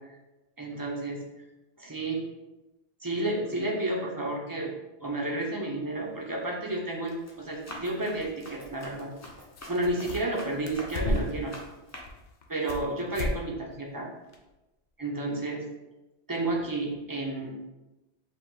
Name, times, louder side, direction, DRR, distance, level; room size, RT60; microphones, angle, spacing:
voice 1, 0.6-1.2 1.8-2.2 3.0-4.7 5.0-9.1 9.7-11.5 12.5-14.1 15.0-15.6 16.3-17.5, right 2 dB, 20° right, -2 dB, 0.6 m, -31 dB
Run, 5.9-6.3 6.7-12.0, left 1 dB, 20° left, 0.5 m, -46 dB
sound 1, 9.2-9.3 9.5-10.4 10.7-11.5 12.0-12.9 13.1-13.4 13.7-13.8 14.3-14.4, left 1 dB, 60° left, 0.7 m, -32 dB
4.9 x 2.3 x 3.8 m, 1.0 s
omnidirectional pair, 1.1 m